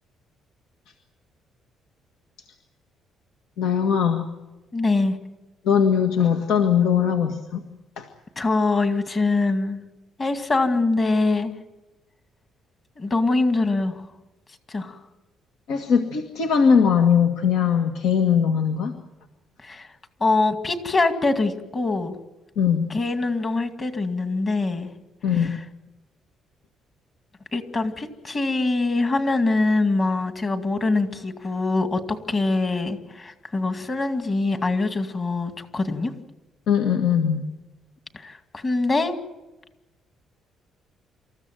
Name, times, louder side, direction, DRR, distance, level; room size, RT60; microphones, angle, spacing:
voice 1, 3.6-4.3 5.6-7.6 8.0-8.1 15.7-18.9 22.6-22.9 25.2-25.5 36.7-37.5, left 7 dB, 85° left, 5 dB, 1.8 m, -20 dB
voice 2, 4.7-5.2 8.4-9.8 10.2-11.5 13.0-14.0 14.7-15.0 19.6-19.9 20.2-22.2 22.9-24.9 25.3-25.6 27.5-36.1 38.1-39.2, left 3 dB, 30° left, 7 dB, 2.2 m, -23 dB
27.5 x 14.5 x 9.2 m, 1.1 s
cardioid pair, 145°, 0 cm